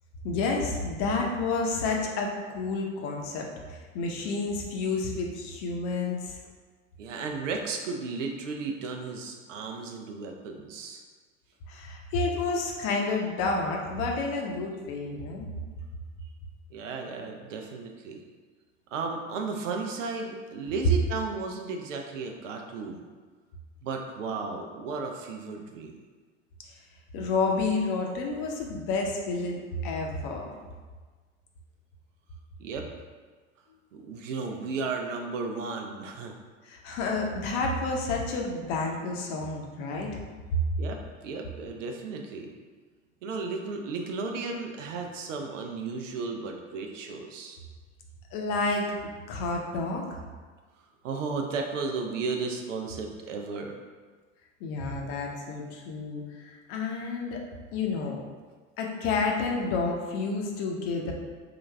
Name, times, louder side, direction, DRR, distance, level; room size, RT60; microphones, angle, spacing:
voice 1, 0.2-6.4 11.7-15.5 26.7-26.8 27.1-30.5 36.6-40.2 40.5-40.6 48.3-48.9 49.3-50.2 54.6-57.4 57.7-58.2 58.8-61.1, left 3 dB, 50° left, 0 dB, 0.8 m, -30 dB
voice 2, 7.0-11.0 16.7-18.2 18.9-23.0 23.8-26.0 32.6-32.9 33.9-36.3 40.8-42.5 43.2-47.6 51.0-53.7, right 4 dB, 70° right, 3 dB, 0.6 m, -34 dB
3.8 x 2.5 x 3.3 m, 1.4 s
hypercardioid pair, 80°, 38 cm